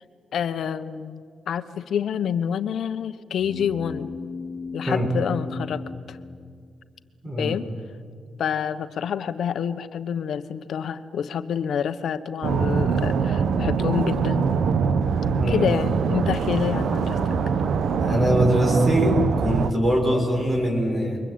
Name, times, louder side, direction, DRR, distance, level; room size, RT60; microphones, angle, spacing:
voice 1, 0.3-4.1 4.7-5.8 6.1-6.2 7.4-7.7 8.4-14.5 15.5-17.4, left 8 dB, 70° left, 11 dB, 1.1 m, -27 dB
sound 1, 3.4-7.1, left 4 dB, 25° left, 1.3 m, -37 dB
voice 2, 7.2-7.6 15.3-15.7 18.0-21.2, equal, 25° right, -1 dB, 6.4 m, -23 dB
sound 2, 12.4-19.7, right 6 dB, 65° right, 1.2 m, -23 dB
28.5 x 23.5 x 8.8 m, 2.1 s
cardioid pair, 130°, 0 cm